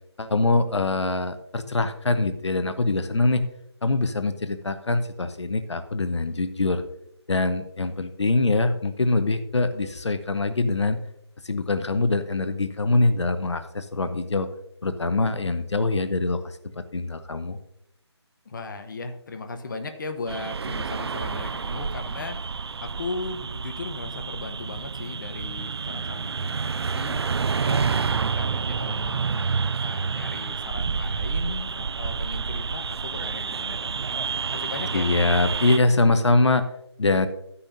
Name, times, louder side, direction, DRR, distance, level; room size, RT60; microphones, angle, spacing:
voice 1, 0.2-3.4 3.8-6.8 7.3-11.0 11.4-14.5 14.8-17.6 34.9-36.6 37.0-37.3, left 3 dB, 75° left, 10 dB, 1.0 m, -23 dB
voice 2, 18.4-27.2 27.6-35.1, left 3 dB, 45° left, 7 dB, 1.1 m, -37 dB
sound 1, 20.3-35.8, right 5 dB, 60° right, 0.4 m, -29 dB
12.0 x 9.8 x 2.7 m, 0.78 s
figure-of-eight pair, 160°, 15 cm